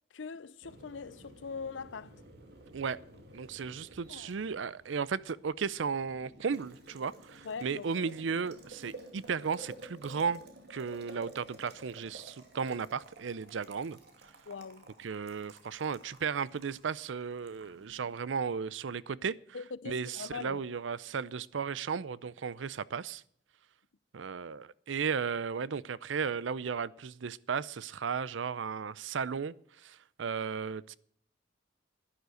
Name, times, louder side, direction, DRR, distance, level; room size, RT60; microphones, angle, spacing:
voice 1, 0.1-2.2 4.1-4.4 7.4-8.1 14.5-14.9 19.5-20.6, left 5 dB, 75° left, 0.6 m, -42 dB
Boiling, 0.6-18.5, right 1 dB, 60° right, 2.5 m, -53 dB
voice 2, 3.3-10.4 10.7-14.0 15.0-19.4 19.9-23.2 24.1-29.5 29.8-31.0, right 6 dB, 80° right, 0.5 m, -35 dB
11.5 x 11.0 x 6.3 m
head